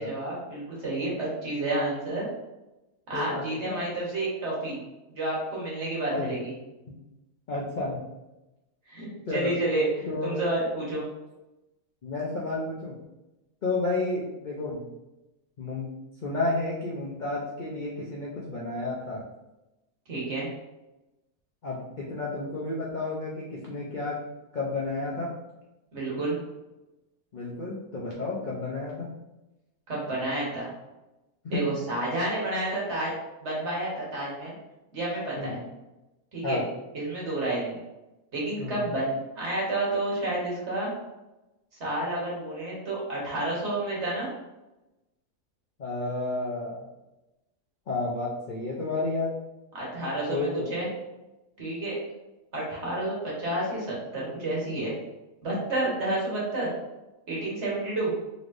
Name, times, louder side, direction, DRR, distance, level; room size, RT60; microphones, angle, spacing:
voice 1, 0.0-2.3 3.1-4.8 5.1-6.5 8.9-11.0 20.1-20.5 25.9-26.4 29.9-30.7 31.5-33.1 33.4-34.5 34.9-35.6 36.3-36.6 36.9-37.8 38.3-40.9 41.8-44.3 49.7-50.9 51.6-52.0 52.5-54.9 55.4-56.7 57.3-58.1, right 2 dB, 45° right, -5 dB, 1.5 m, -30 dB
voice 2, 3.1-3.8 6.1-6.3 6.9-7.0 7.5-8.1 9.3-9.5 10.1-10.4 12.0-13.0 13.6-14.9 15.6-15.9 16.2-19.2 21.6-24.2 24.5-25.3 27.3-29.2 31.4-31.7 35.4-35.6 36.4-36.7 38.6-38.8 45.8-46.9 47.9-49.4 50.3-50.8, left 2 dB, 60° left, -5 dB, 0.5 m, -31 dB
4.1 x 3.2 x 2.5 m, 1.0 s
omnidirectional pair, 1.7 m